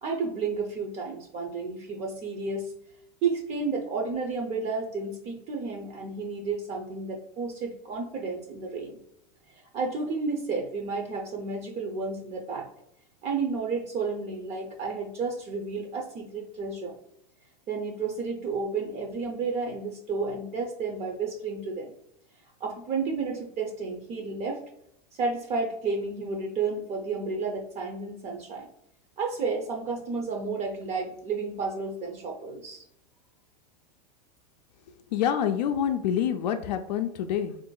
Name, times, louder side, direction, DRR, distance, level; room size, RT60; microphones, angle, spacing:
voice 1, 0.0-2.7 3.2-9.0 9.5-12.7 13.2-16.9 17.7-21.9 22.6-24.6 25.1-28.7 29.2-32.9, right 4 dB, 30° right, 2 dB, 0.5 m, -31 dB
voice 2, 35.1-37.6, left 9 dB, 85° left, 7 dB, 0.4 m, -27 dB
2.9 x 2.5 x 3.8 m, 0.76 s
supercardioid pair, 145°, 21 cm